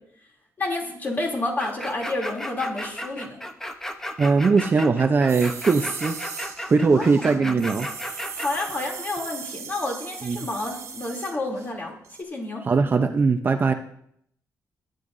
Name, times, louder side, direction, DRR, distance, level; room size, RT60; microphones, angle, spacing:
voice 1, 0.6-3.4 6.9-7.6 8.3-11.9 12.3-12.6, left 2 dB, 30° left, 0 dB, 2.9 m, -30 dB
sound 1, 1.6-8.7, equal, 10° left, 0.9 m, -34 dB
voice 2, 4.2-6.2 6.7-7.9 10.2-10.5 12.6-13.7, right 4 dB, 30° right, 6 dB, 0.7 m, -20 dB
sound 2, 5.3-11.7 12.0-12.2, right 6 dB, 50° right, 1.2 m, -38 dB
20.5 x 9.1 x 2.6 m, 0.69 s
cardioid pair, 145°, 6 cm